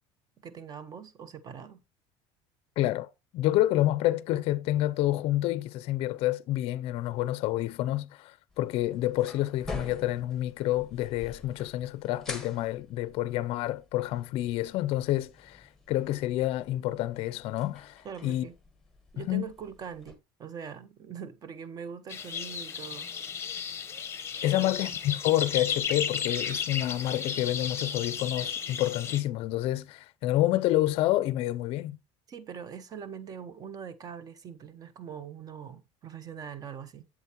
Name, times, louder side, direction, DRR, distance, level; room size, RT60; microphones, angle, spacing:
voice 1, 0.4-1.8 18.0-18.6 19.1-23.1 24.6-25.0 32.3-37.0, right 7 dB, 30° right, 0.7 m, -42 dB
voice 2, 2.8-18.5 19.2-19.5 24.4-32.0, left 15 dB, 55° left, 0.4 m, -28 dB
sound 1, 8.5-20.1, left 3 dB, 5° left, 1.4 m, -47 dB
sound 2, 22.1-29.2, left 7 dB, 20° left, 0.9 m, -34 dB
8.0 x 7.4 x 2.9 m
cardioid pair, 140°, 12 cm